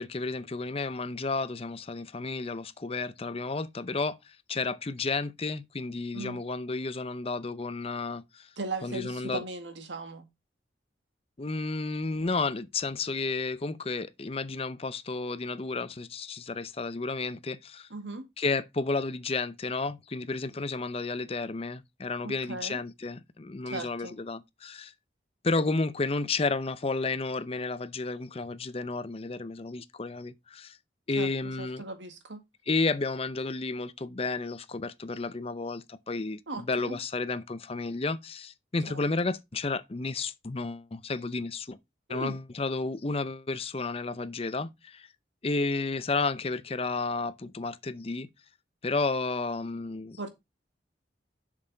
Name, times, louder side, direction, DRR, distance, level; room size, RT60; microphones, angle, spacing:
voice 1, 0.0-8.5 8.8-9.4 11.4-17.9 18.4-24.9 25.4-30.8 31.1-31.8 32.7-41.8 42.1-45.1 45.4-48.3 48.8-50.2, left 3 dB, 35° left, 0.6 m, -32 dB
voice 2, 8.6-10.3 17.9-18.3 22.2-22.8 23.7-24.1 31.2-31.3 31.6-32.4 36.5-37.0 42.1-42.4 50.2-50.3, right 2 dB, 90° right, 1.9 m, -38 dB
7.3 x 6.4 x 3.9 m
head